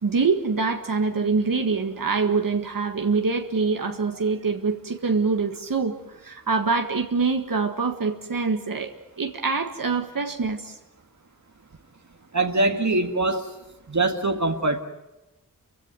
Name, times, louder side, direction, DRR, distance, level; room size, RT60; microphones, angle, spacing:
voice 1, 0.0-6.0 6.2-10.8, right 4 dB, 70° right, 5 dB, 1.8 m, -25 dB
voice 2, 12.3-13.5 13.9-14.8, right 2 dB, 55° right, 5 dB, 2.0 m, -23 dB
28.0 x 16.0 x 9.2 m, 1.0 s
wide cardioid pair, 55°, 35 cm